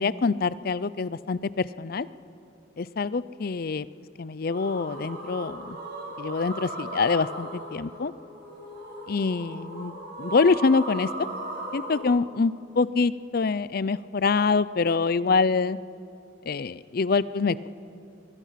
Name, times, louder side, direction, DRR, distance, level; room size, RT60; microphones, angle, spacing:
voice 1, 0.0-2.1 2.8-3.8 4.2-5.8 6.2-8.1 9.1-11.3 11.7-15.8 16.5-17.7, left 4 dB, 50° left, 17 dB, 0.5 m, -25 dB
sound 1, 4.5-12.0, right 2 dB, 55° right, 6.1 m, -37 dB
24.0 x 20.5 x 5.8 m, 2.6 s
head